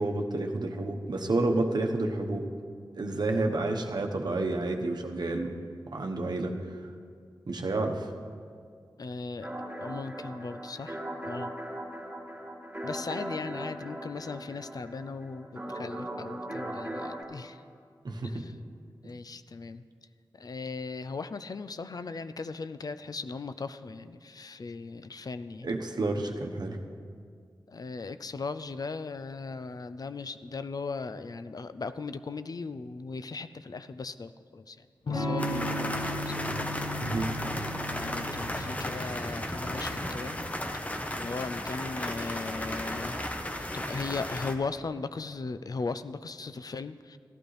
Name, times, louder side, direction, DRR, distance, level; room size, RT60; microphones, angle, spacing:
voice 1, 0.0-2.5 3.0-5.5 5.9-6.5 7.5-8.1 18.0-18.3 25.6-26.8 37.0-37.3, right 2 dB, 65° right, 3 dB, 1.0 m, -30 dB
voice 2, 9.0-11.5 12.8-17.6 18.2-18.6 19.0-19.8 20.3-25.7 27.7-36.5 37.9-40.4 40.7-40.8 41.1-43.2 43.6-47.2, left 4 dB, 55° left, 12 dB, 0.4 m, -38 dB
sound 1, 9.4-17.2, right 1 dB, 20° right, 2.1 m, -39 dB
Electric guitar / Strum, 35.1-40.8, left 1 dB, 80° left, 1.2 m, -36 dB
sound 2, 35.4-44.5, left 1 dB, 20° left, 0.9 m, -34 dB
15.5 x 11.5 x 3.2 m, 2.2 s
cardioid pair, 55°, 8 cm